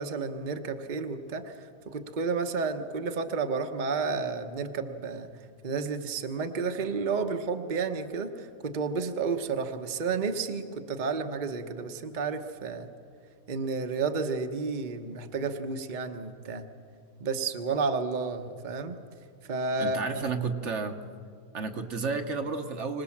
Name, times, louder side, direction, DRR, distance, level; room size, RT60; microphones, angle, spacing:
voice 1, 0.0-1.5 1.9-5.3 5.6-12.9 13.5-16.7 17.2-19.0 19.5-20.3, right 4 dB, 35° right, 6 dB, 1.0 m, -31 dB
voice 2, 19.8-21.0 21.5-23.0, right 4 dB, 55° right, 6 dB, 1.3 m, -31 dB
25.5 x 18.5 x 7.2 m, 2.3 s
omnidirectional pair, 1.5 m